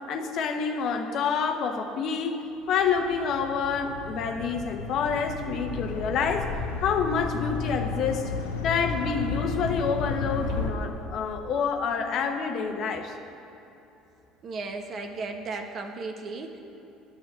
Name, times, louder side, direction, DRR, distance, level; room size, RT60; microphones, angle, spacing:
voice 1, 0.1-2.3 2.7-6.5 6.8-8.2 8.6-13.1, left 6 dB, 60° left, 5 dB, 0.9 m, -27 dB
sound 1, 2.7-10.7, left 4 dB, 90° left, 0.7 m, -33 dB
voice 2, 14.4-16.6, right 3 dB, 50° right, 4 dB, 1.1 m, -35 dB
9.4 x 5.6 x 7.5 m, 3.0 s
hypercardioid pair, 70°, 0 cm